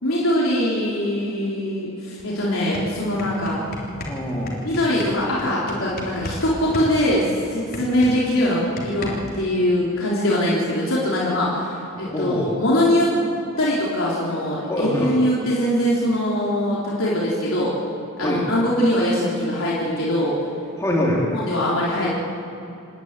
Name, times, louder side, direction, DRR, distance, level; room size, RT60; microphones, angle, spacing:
voice 1, 0.0-3.6 4.6-13.1 13.6-17.8 18.2-20.4 21.3-22.1, left 1 dB, 75° left, -6 dB, 3.8 m, -22 dB
sound 1, 2.2-2.3 2.6-6.4 6.7-9.4, left 2 dB, 45° left, 3.5 m, -33 dB
voice 2, 4.1-4.6 12.1-12.5 14.7-15.1 18.2-18.4 20.8-21.2, equal, 15° left, -3 dB, 3.5 m, -24 dB
27.0 x 11.5 x 9.8 m, 2.8 s
head